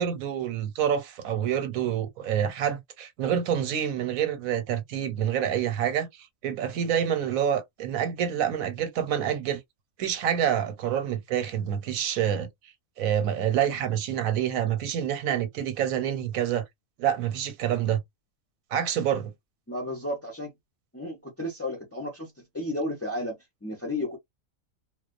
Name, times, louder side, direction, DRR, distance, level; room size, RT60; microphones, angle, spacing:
voice 1, 0.0-9.6 10.0-12.5 13.0-16.6 17.0-18.0 18.7-19.3, right 9 dB, 90° right, 1.2 m, -27 dB
voice 2, 19.7-20.5 20.9-24.2, left 1 dB, 20° left, 0.4 m, -33 dB
2.3 x 2.2 x 2.4 m
omnidirectional pair, 1.4 m